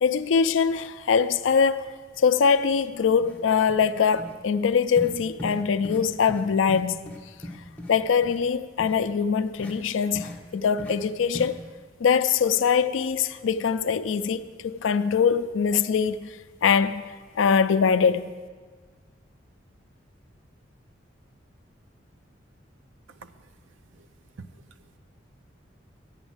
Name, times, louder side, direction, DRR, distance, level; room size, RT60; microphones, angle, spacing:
voice 1, 0.0-1.9 2.2-7.1 7.9-11.6 12.0-16.3 16.6-18.3, left 6 dB, 80° left, 0.4 m, -23 dB
sound 1, 2.7-2.8 3.2-3.4 3.7-3.9 4.2-4.3 5.0-5.1 5.4-5.6 5.8-6.0 6.3-6.4 6.7-7.9 8.2-8.4 8.8-8.9 9.6-9.7 10.1-10.4 10.8-10.9 11.3-11.5, left 1 dB, 5° left, 1.1 m, -37 dB
voice 2, 23.1-23.5 23.9-24.1 24.4-25.0, right 4 dB, 85° right, 0.6 m, -48 dB
9.5 x 7.1 x 7.3 m
head